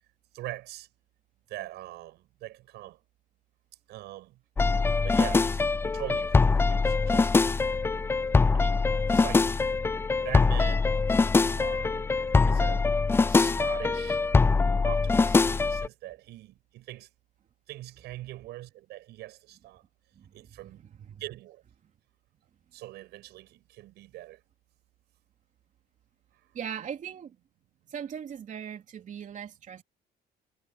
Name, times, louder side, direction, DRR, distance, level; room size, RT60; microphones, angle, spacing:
voice 1, 0.3-0.9 1.5-3.0 3.9-4.4 5.0-5.6 5.9-7.9 8.5-9.5 10.2-10.9 11.6-12.1 12.4-12.9 13.3-14.2 14.8-17.1 17.7-19.8 20.3-20.9 21.2-21.6 22.7-24.4, right 16 dB, 80° right, 7.9 m, -42 dB
sound 1, 4.6-15.9, left 4 dB, 15° left, 0.3 m, -23 dB
voice 2, 20.1-21.2 26.5-27.3 27.9-29.8, right 8 dB, 50° right, 3.3 m, -40 dB
cardioid pair, 110°, 17 cm